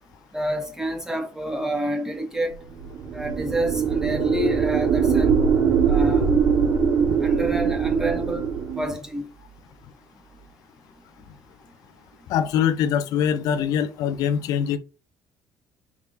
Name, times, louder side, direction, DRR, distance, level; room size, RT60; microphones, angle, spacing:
voice 1, 0.3-2.5 3.1-5.4 5.9-6.4 7.2-8.5 8.8-9.3, right 1 dB, 10° right, 1.5 m, -28 dB
sound 1, 2.8-8.9, right 6 dB, 70° right, 2.1 m, -22 dB
voice 2, 12.3-14.8, left 8 dB, 70° left, 0.5 m, -23 dB
4.6 x 3.6 x 2.7 m
supercardioid pair, 75°, 7 cm